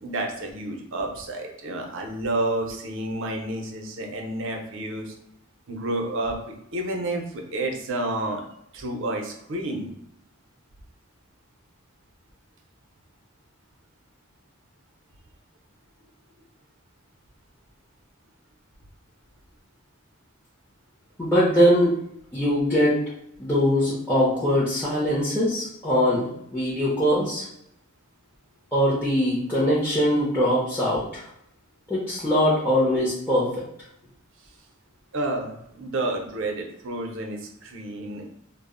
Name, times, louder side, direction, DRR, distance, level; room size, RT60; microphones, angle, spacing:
voice 1, 0.0-5.1 5.7-6.3 6.7-8.4 8.7-9.9 35.1-38.3, right 1 dB, 65° right, 2 dB, 0.6 m, -30 dB
voice 2, 21.2-21.9 22.3-23.0 23.4-27.5 28.7-31.2 31.9-33.5, equal, 10° left, -9 dB, 0.5 m, -22 dB
2.0 x 2.0 x 3.6 m, 0.77 s
head